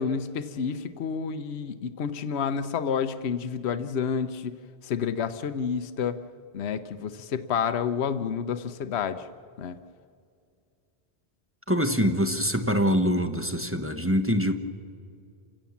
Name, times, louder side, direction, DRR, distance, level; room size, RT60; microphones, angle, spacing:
voice 1, 0.0-4.5 4.8-6.2 6.5-9.3 9.6-9.8, left 7 dB, 75° left, 10 dB, 1.0 m, -29 dB
voice 2, 11.7-14.5, equal, 15° right, 6 dB, 1.0 m, -24 dB
28.5 x 16.5 x 7.2 m, 2.3 s
omnidirectional pair, 1.1 m